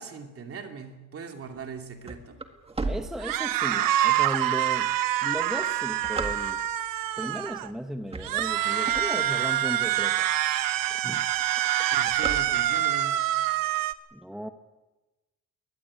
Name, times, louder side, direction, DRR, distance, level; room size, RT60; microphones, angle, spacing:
voice 1, 0.0-2.4 11.9-13.2, right 5 dB, 40° right, 2.8 m, -40 dB
sound 1, 1.6-3.8 4.4-4.5 5.2-6.9 7.5-7.7 8.0-9.6 10.1-10.2 10.4-10.5 10.8-11.1 11.4-13.0, right 3 dB, 15° right, 1.8 m, -35 dB
voice 2, 2.8-4.9 5.2-6.6 7.2-10.3 10.9-11.3 14.1-14.5, equal, ahead, 0.8 m, -36 dB
sound 2, 3.2-7.7 8.2-13.9, right 13 dB, 75° right, 1.2 m, -26 dB
22.5 x 19.0 x 8.7 m
cardioid pair, 165°, 34 cm